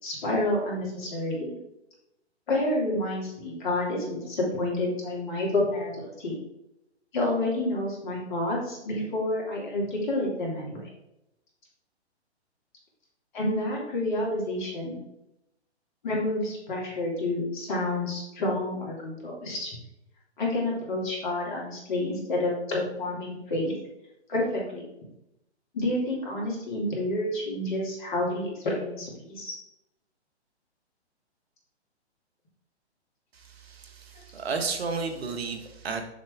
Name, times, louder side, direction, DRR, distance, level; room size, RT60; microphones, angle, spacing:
voice 1, 0.0-1.5 2.5-6.3 7.1-10.8 13.3-15.0 16.0-19.7 20.4-23.7 24.3-24.8 25.7-29.5, left 1 dB, 45° left, -3 dB, 2.6 m, -29 dB
voice 2, 33.3-36.0, right 4 dB, 65° right, 6 dB, 1.2 m, -33 dB
6.5 x 5.7 x 3.5 m, 0.87 s
figure-of-eight pair, 130°, 34 cm